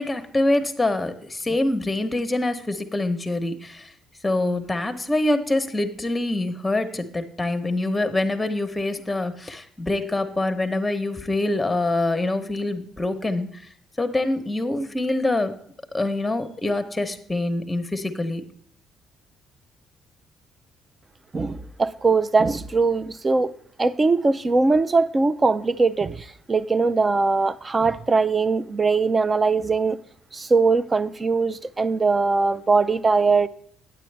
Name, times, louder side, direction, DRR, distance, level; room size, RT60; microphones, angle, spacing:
voice 1, 0.0-3.9 4.2-13.7 14.0-15.5 15.9-18.4, left 2 dB, 15° left, 1.0 m, -25 dB
voice 2, 21.3-23.5 23.8-30.0 30.3-33.5, right 4 dB, 25° right, 0.5 m, -21 dB
9.1 x 8.6 x 3.4 m
supercardioid pair, 85°, 0 cm